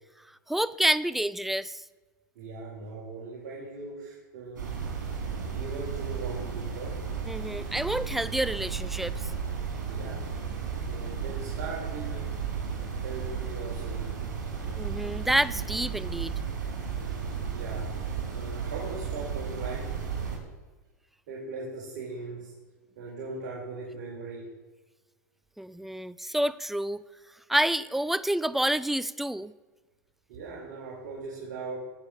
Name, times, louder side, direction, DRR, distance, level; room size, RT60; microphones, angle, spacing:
voice 1, 0.5-1.8 7.3-9.3 14.8-16.3 25.6-27.0 27.5-29.5, right 1 dB, ahead, 19 dB, 0.5 m, -28 dB
voice 2, 2.3-5.1 5.4-7.0 9.9-10.3 10.9-12.3 13.0-14.3 17.5-20.0 21.3-22.5 22.9-24.5 30.3-31.8, right 3 dB, 65° right, -4 dB, 4.5 m, -39 dB
sound 1, 4.6-20.4, right 6 dB, 85° right, 4.9 m, -34 dB
18.5 x 6.9 x 7.3 m, 1.3 s
hypercardioid pair, 110°, 10 cm